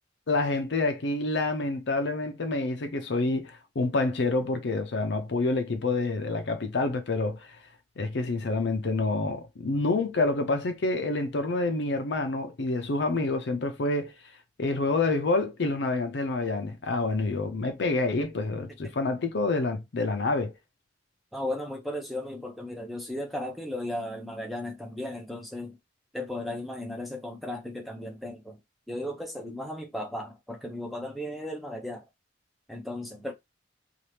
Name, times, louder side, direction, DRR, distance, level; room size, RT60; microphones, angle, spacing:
voice 1, 0.3-7.6 8.0-14.1 14.6-20.5, left 3 dB, 70° left, 0.5 m, -27 dB
voice 2, 21.3-25.8 26.1-28.6 28.9-32.0 32.7-33.3, left 1 dB, ahead, 0.6 m, -35 dB
2.8 x 2.4 x 3.2 m
head